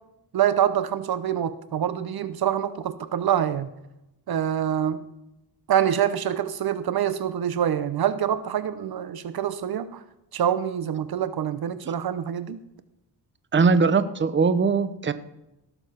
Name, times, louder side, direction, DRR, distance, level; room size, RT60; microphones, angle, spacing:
voice 1, 0.3-3.7 4.3-5.0 5.7-10.0 10.3-12.6, right 9 dB, 60° right, 14 dB, 0.8 m, -25 dB
voice 2, 13.5-15.1, right 4 dB, 25° right, 13 dB, 0.9 m, -20 dB
17.0 x 7.1 x 5.7 m, 0.90 s
cardioid pair, 100°, 42 cm